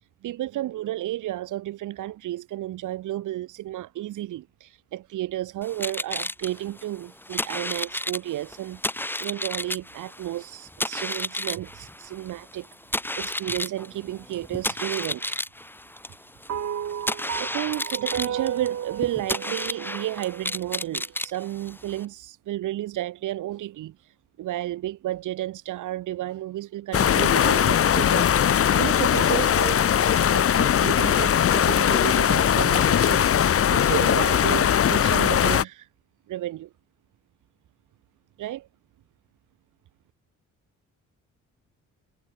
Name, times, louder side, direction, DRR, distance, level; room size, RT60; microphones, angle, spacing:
voice 1, 0.2-15.4 17.4-33.3 33.7-35.9 36.3-36.7 38.4-38.7, right 14 dB, 80° right, 3.5 m, -32 dB
sound 1, 5.6-22.0, left 1 dB, 5° left, 3.7 m, -32 dB
sound 2, 16.5-20.9, right 9 dB, 60° right, 6.3 m, -33 dB
sound 3, 26.9-35.6, left 9 dB, 50° left, 1.2 m, -20 dB
cardioid pair, 90°, 30 cm